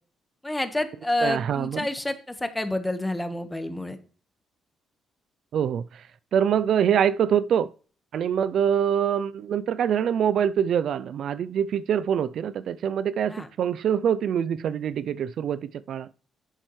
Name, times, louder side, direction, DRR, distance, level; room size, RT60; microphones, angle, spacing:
voice 1, 0.4-4.0 13.3-13.5, left 1 dB, 10° left, 1.3 m, -28 dB
voice 2, 1.2-1.9 5.5-6.0 6.3-7.7 8.1-16.1, right 8 dB, 65° right, 0.4 m, -24 dB
11.0 x 7.7 x 3.1 m
cardioid pair, 90°, 0 cm